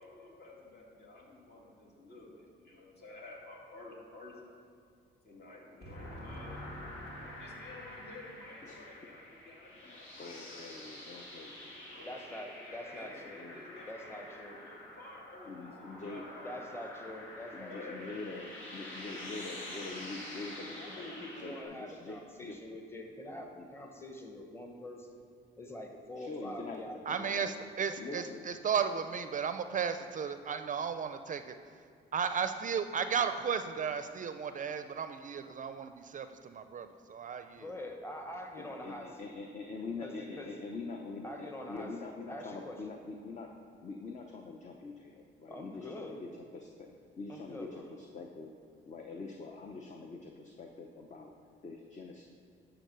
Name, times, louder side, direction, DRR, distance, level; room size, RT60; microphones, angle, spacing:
voice 1, 0.0-4.6 5.2-11.0 11.7-19.0, left 2 dB, 50° left, -2 dB, 2.2 m, -50 dB
sound 1, 5.9-21.6, left 1 dB, 85° left, 1.8 m, -48 dB
voice 2, 9.8-11.7 13.0-13.8 15.4-16.2 17.5-22.6 23.6-23.7 26.1-27.0 27.3-27.4 28.0-28.5 38.6-43.5 43.8-46.7 47.2-48.5 48.9-51.3 51.6-52.2, left 3 dB, 35° left, 2 dB, 0.7 m, -44 dB
voice 3, 12.1-13.4 13.9-14.5 16.4-18.1 20.7-25.2 25.6-27.5 27.9-28.3 37.5-39.3 40.0-40.5 41.2-42.8 45.5-46.2 47.3-47.8, left 1 dB, 10° left, 2 dB, 1.1 m, -45 dB
voice 4, 27.1-31.5 32.1-37.6, right 6 dB, 40° right, 9 dB, 0.4 m, -34 dB
11.0 x 3.9 x 6.8 m, 2.2 s
cardioid pair, 90°, 20 cm